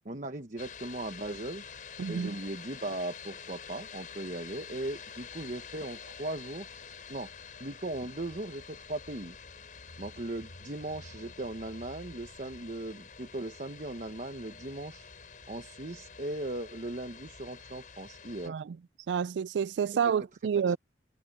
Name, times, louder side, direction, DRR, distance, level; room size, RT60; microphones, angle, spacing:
voice 1, 0.0-1.6 2.1-6.7 7.1-7.3 7.6-9.4 10.0-15.1 15.5-18.6 20.7-20.8, right 2 dB, 45° right, 1.1 m, -38 dB
sound 1, 0.6-18.5, left 6 dB, 50° left, 4.4 m, -48 dB
voice 2, 2.0-2.3 18.5-18.8 19.1-20.8, right 7 dB, 85° right, 0.3 m, -29 dB
Car / Engine, 7.9-14.9, equal, 85° left, 3.7 m, -56 dB
head